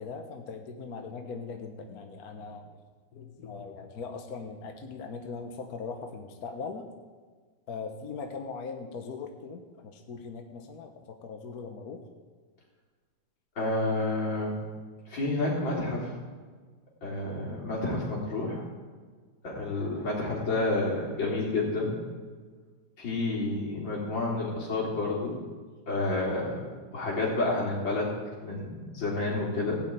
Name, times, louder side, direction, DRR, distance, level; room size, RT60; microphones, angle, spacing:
voice 1, 0.0-2.7 3.1-6.9 7.7-12.0, left 4 dB, 55° left, 5 dB, 1.5 m, -40 dB
voice 2, 13.6-14.6 15.1-16.2 17.0-18.6 19.4-21.9 23.0-25.4 25.9-26.6 26.9-28.1 28.4-29.8, left 2 dB, 90° left, -3 dB, 4.1 m, -29 dB
16.5 x 6.0 x 8.8 m, 1.5 s
omnidirectional pair, 2.0 m